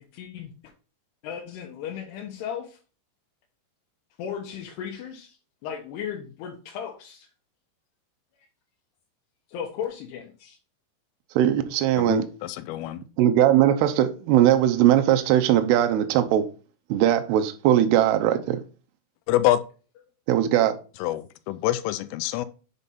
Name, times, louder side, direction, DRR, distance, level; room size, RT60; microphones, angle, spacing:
voice 1, 0.1-0.5 1.2-2.8 4.2-5.4 5.6-7.3 9.5-10.6, left 8 dB, 70° left, 2.7 m, -35 dB
voice 2, 11.4-12.3 13.2-16.5 16.9-18.6 20.3-20.8, right 11 dB, 80° right, 2.4 m, -20 dB
voice 3, 12.0-13.0 19.3-19.6 21.0-22.5, left 14 dB, 90° left, 3.2 m, -26 dB
7.3 x 5.2 x 4.2 m
omnidirectional pair, 5.7 m